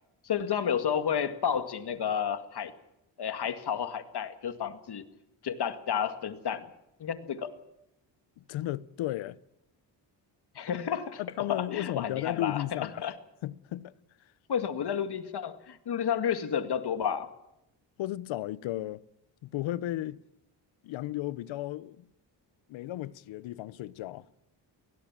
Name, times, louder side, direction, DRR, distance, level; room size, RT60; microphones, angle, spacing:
voice 1, 0.2-2.7 3.2-5.0 5.4-6.6 7.0-7.5 10.6-11.2 11.5-12.6 13.0-13.1 14.5-17.3, left 8 dB, 60° left, 2.1 m, -31 dB
voice 2, 8.4-9.4 11.2-13.1 13.4-13.9 18.0-19.0 19.4-20.2 20.8-22.0 22.7-24.2, left 14 dB, 90° left, 0.8 m, -34 dB
22.5 x 17.5 x 7.5 m
cardioid pair, 75°, 45 cm